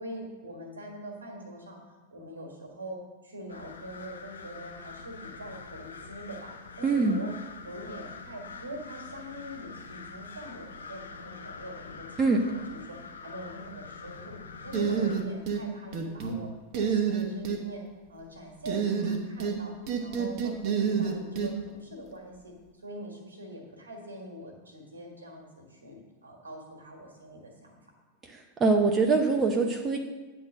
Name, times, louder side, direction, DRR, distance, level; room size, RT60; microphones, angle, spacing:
voice 1, 0.0-1.8 2.1-7.3 7.6-14.4 14.6-19.7 20.0-27.8, right 1 dB, 75° right, 1 dB, 1.6 m, -43 dB
sound 1, 3.5-15.2, left 5 dB, 70° left, 0.6 m, -45 dB
voice 2, 6.8-7.2 12.2-12.4 28.2-30.0, right 4 dB, 20° right, 3 dB, 0.6 m, -24 dB
sound 2, 14.7-15.6 15.9-16.4 16.7-17.6 18.7-19.6 19.9-21.5, right 6 dB, 45° right, 1.0 m, -28 dB
9.1 x 3.7 x 6.3 m, 1.3 s
figure-of-eight pair, 90°, 0 cm